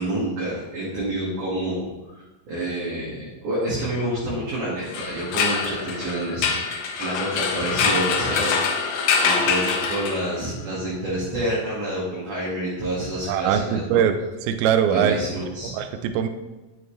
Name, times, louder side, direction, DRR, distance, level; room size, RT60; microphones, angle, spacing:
voice 1, 0.0-8.9 9.2-14.0 14.9-15.7, right 1 dB, 55° right, -7 dB, 3.2 m, -28 dB
sound 1, 4.8-10.5, left 5 dB, 70° left, 1.9 m, -24 dB
voice 2, 13.3-15.2 15.6-16.3, right 8 dB, 80° right, 8 dB, 2.4 m, -22 dB
9.6 x 7.7 x 3.3 m, 1.1 s
omnidirectional pair, 4.5 m